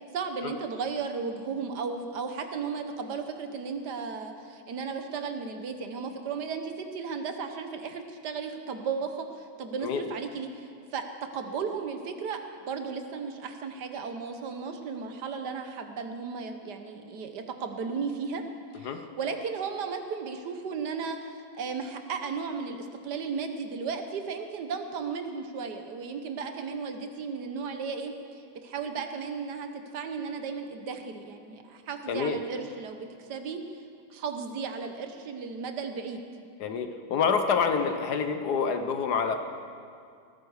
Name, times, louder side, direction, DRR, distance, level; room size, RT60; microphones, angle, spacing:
voice 1, 0.1-18.4 18.7-21.2 21.6-28.1 28.6-33.6 34.1-36.2, right 5 dB, 70° right, 6 dB, 1.6 m, -35 dB
voice 2, 32.1-32.4 36.6-39.4, left 6 dB, 65° left, 7 dB, 1.5 m, -27 dB
19.0 x 14.0 x 4.9 m, 2.3 s
omnidirectional pair, 1.9 m